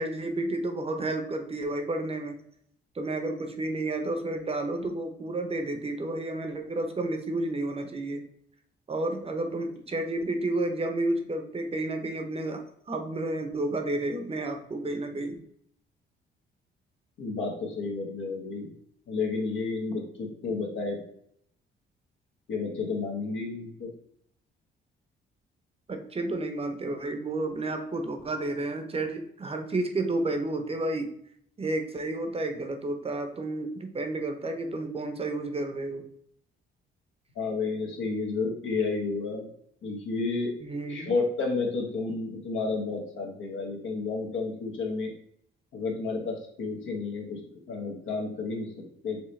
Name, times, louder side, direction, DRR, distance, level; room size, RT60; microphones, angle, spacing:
voice 1, 0.0-2.4 2.9-8.3 8.9-15.3 25.9-31.2 31.6-36.1 40.6-41.1, right 2 dB, 30° right, 6 dB, 0.7 m, -31 dB
voice 2, 17.2-18.7 19.1-21.0 22.5-23.9 37.3-39.5 39.8-40.5 40.9-45.1 45.7-49.2, left 4 dB, 75° left, 0 dB, 1.3 m, -31 dB
4.7 x 3.2 x 3.2 m, 0.68 s
cardioid pair, 90°, 20 cm